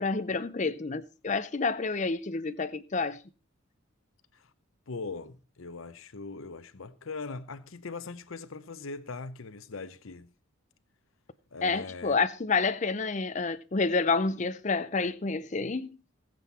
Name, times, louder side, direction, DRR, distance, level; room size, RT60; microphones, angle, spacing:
voice 1, 0.0-3.2 11.6-15.9, left 4 dB, 35° left, 0.5 m, -29 dB
voice 2, 4.9-10.3 11.5-12.1, left 4 dB, 70° left, 0.8 m, -40 dB
19.0 x 7.8 x 4.2 m
head